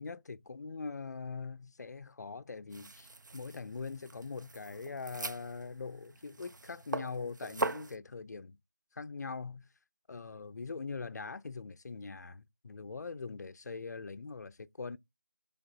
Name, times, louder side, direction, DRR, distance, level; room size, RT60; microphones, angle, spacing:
voice 1, 0.0-8.6 8.9-9.7 10.1-15.0, left 4 dB, 65° left, 0.4 m, -42 dB
sound 1, 2.7-8.0, right 3 dB, 90° right, 0.4 m, -41 dB
3.4 x 2.4 x 3.7 m
figure-of-eight pair, 170°, 10 cm